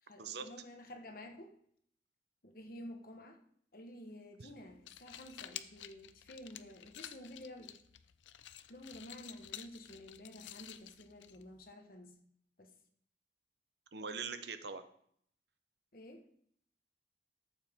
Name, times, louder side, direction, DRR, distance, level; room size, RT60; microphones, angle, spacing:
voice 1, 0.0-1.6 2.4-3.4 3.7-7.8 8.7-12.2 12.6-12.7 15.9-16.2, left 1 dB, 50° left, 5 dB, 1.2 m, -51 dB
sound 1, 4.7-11.7, left 11 dB, 90° left, 0.5 m, -51 dB
voice 2, 13.9-14.8, right 5 dB, 70° right, 9 dB, 0.8 m, -42 dB
13.5 x 7.3 x 3.6 m, 0.66 s
head